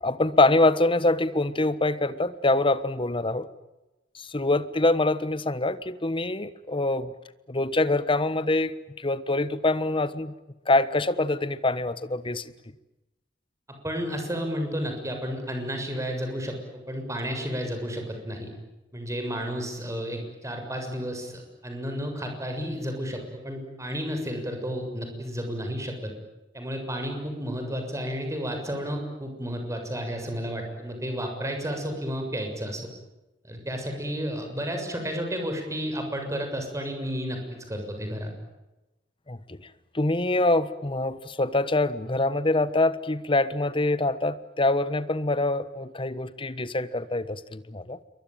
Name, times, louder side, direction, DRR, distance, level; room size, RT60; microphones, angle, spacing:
voice 1, 0.0-3.5 4.1-7.1 7.5-10.3 10.7-12.5 39.3-39.6 39.9-48.0, left 2 dB, 30° left, 14 dB, 1.3 m, -25 dB
voice 2, 13.7-18.5 18.9-26.1 26.5-32.9 33.4-38.3, equal, 15° right, 5 dB, 6.9 m, -32 dB
28.5 x 23.0 x 9.2 m, 1.0 s
head